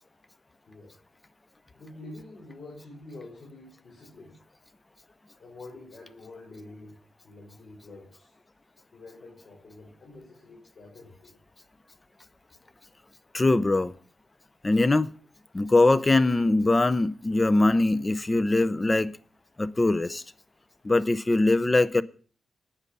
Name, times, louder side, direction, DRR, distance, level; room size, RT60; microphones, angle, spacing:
voice 1, 0.7-1.0 1.7-4.4 5.4-7.0 7.2-8.3 8.9-11.4 17.3-17.4, left 2 dB, 55° left, 5.2 m, -47 dB
voice 2, 13.3-13.9 14.6-15.1 15.5-19.1 19.6-20.2 20.8-22.0, left 2 dB, 20° left, 0.7 m, -22 dB
9.8 x 9.2 x 8.3 m
cardioid pair, 100°, 0 cm